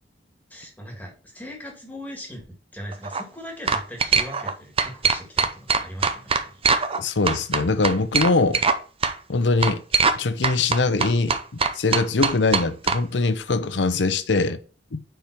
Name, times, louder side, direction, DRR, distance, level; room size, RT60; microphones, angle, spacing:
voice 1, 0.5-2.4 2.7-6.5, equal, 10° left, 1.6 m, -39 dB
sound 1, 2.9-3.2 3.7-4.5 4.8-7.0 7.3-8.8 9.0-9.1 9.6-10.2 10.4-13.0, right 5 dB, 30° right, 0.6 m, -21 dB
voice 2, 6.9-8.6 9.3-9.8 10.2-11.4 11.7-14.6 14.9-15.0, left 3 dB, 75° left, 0.7 m, -22 dB
5.1 x 4.5 x 5.8 m
head